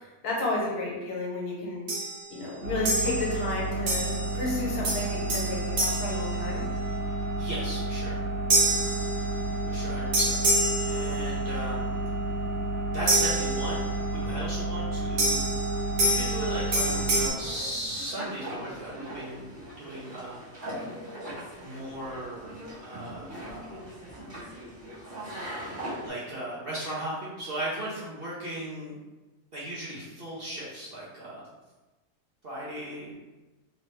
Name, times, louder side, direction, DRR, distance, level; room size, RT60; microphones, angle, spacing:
voice 1, 0.2-1.9 2.3-6.6, left 2 dB, 75° left, -3 dB, 1.4 m, -32 dB
sound 1, 1.9-2.3 2.9-3.4 3.9-4.4 4.8-7.0 8.5-9.7 10.1-11.6 13.1-14.1 15.2-17.3, right 1 dB, 70° right, 1.5 m, -28 dB
sound 2, 2.6-17.3, right 2 dB, 90° right, 1.2 m, -31 dB
voice 2, 7.4-8.2 9.7-10.4 10.8-12.0 12.9-19.5 19.8-20.5 21.6-22.5 22.8-23.8 25.2-25.5 26.0-29.0 29.5-31.4 32.4-33.1, right 1 dB, 50° right, -8 dB, 0.7 m, -37 dB
sound 3, 16.8-26.1, equal, 15° right, 1.1 m, -40 dB
3.0 x 2.8 x 3.2 m, 1.1 s
omnidirectional pair, 1.7 m